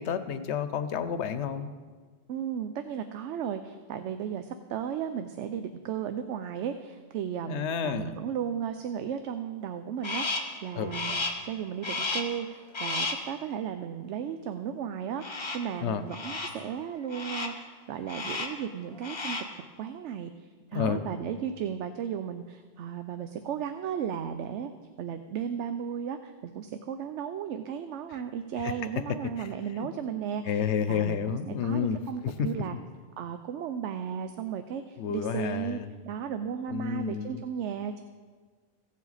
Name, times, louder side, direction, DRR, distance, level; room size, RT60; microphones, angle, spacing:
voice 1, 0.0-1.7 7.5-8.1 10.7-11.0 15.8-16.0 20.7-21.0 28.6-28.7 29.4-29.5 29.8-29.9 30.4-32.0 32.4-32.5 35.0-35.9 36.7-37.4, left 7 dB, 80° left, 11 dB, 1.0 m, -30 dB
voice 2, 2.3-19.4 19.8-24.7 25.0-32.8 33.2-38.0, right 8 dB, 90° right, 9 dB, 0.9 m, -35 dB
Crow, 10.0-10.6 10.9-11.5 11.8-12.4 12.7-13.3 15.2-15.7 16.1-16.6 17.1-17.6 18.1-18.6 18.9-19.6, left 3 dB, 30° left, 0.8 m, -33 dB
16.0 x 7.4 x 4.1 m, 1.5 s
omnidirectional pair, 1.2 m